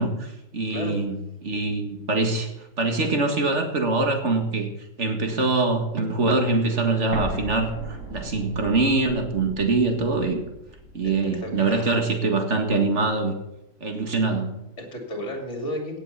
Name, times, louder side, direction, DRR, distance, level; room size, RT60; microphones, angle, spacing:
voice 1, 0.0-2.5 2.8-4.7 5.0-10.4 10.9-13.3 13.8-14.6, right 3 dB, 40° right, 4 dB, 2.1 m, -24 dB
Explosion, 7.1-11.9, right 1 dB, 85° right, 4.2 m, -38 dB
voice 2, 11.4-12.0 14.8-16.0, equal, 40° left, 2 dB, 3.1 m, -33 dB
16.5 x 7.9 x 5.6 m, 0.88 s
omnidirectional pair, 1.9 m